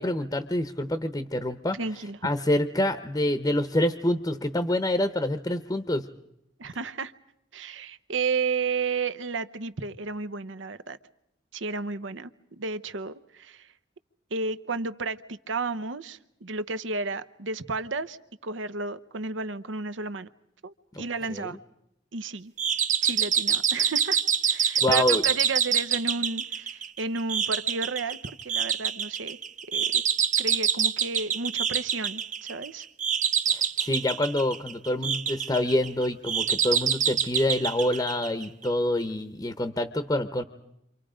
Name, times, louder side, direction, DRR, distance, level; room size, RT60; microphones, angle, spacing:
voice 1, 0.0-1.8 2.2-6.1 21.3-21.5 24.8-25.2 33.5-40.4, left 1 dB, 20° left, 10 dB, 0.8 m, -26 dB
voice 2, 1.7-2.2 6.6-7.1 7.5-11.0 11.5-12.3 12.6-13.7 14.3-20.3 20.6-21.6 22.1-22.5 23.0-29.4 29.7-30.0 30.4-32.9, right 4 dB, 85° right, 13 dB, 0.9 m, -32 dB
sound 1, 22.6-38.7, right 7 dB, 40° right, 0.8 m, -26 dB
29.0 x 26.5 x 5.1 m, 0.81 s
head